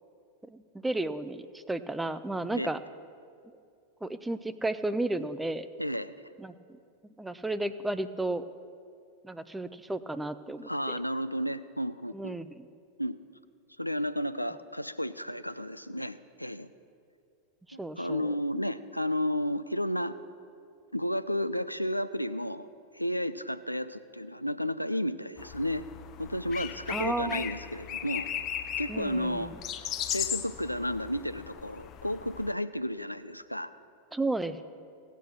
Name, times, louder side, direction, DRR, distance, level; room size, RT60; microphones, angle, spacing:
voice 1, 0.5-2.8 4.0-5.7 6.4-6.5 7.2-8.4 9.2-11.0 12.1-12.7 17.8-18.3 26.9-27.5 28.9-29.5 34.1-34.6, right 2 dB, 5° right, 13 dB, 0.5 m, -33 dB
voice 2, 5.8-6.1 10.6-12.4 13.0-13.2 13.8-16.7 17.7-20.1 20.9-22.7 22.9-25.8 26.2-28.3 28.8-29.5 30.1-33.7, equal, 90° left, 13 dB, 0.4 m, -32 dB
sound 1, 25.4-32.5, left 9 dB, 35° left, 0.6 m, -37 dB
16.5 x 8.2 x 6.1 m, 2.3 s
figure-of-eight pair, 90°, 0 cm